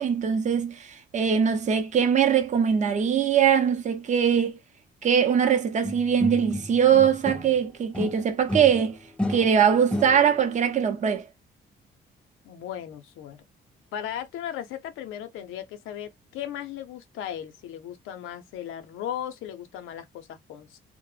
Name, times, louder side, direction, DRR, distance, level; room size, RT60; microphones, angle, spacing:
voice 1, 0.0-4.6 5.0-9.0 9.3-11.3, right 7 dB, 40° right, 0.6 m, -22 dB
sound 1, 5.8-7.6 7.9-10.5, left 1 dB, 5° left, 0.5 m, -32 dB
voice 2, 12.4-13.4 13.9-20.8, left 10 dB, 90° left, 0.5 m, -36 dB
2.0 x 2.0 x 3.1 m
cardioid pair, 90°, 20 cm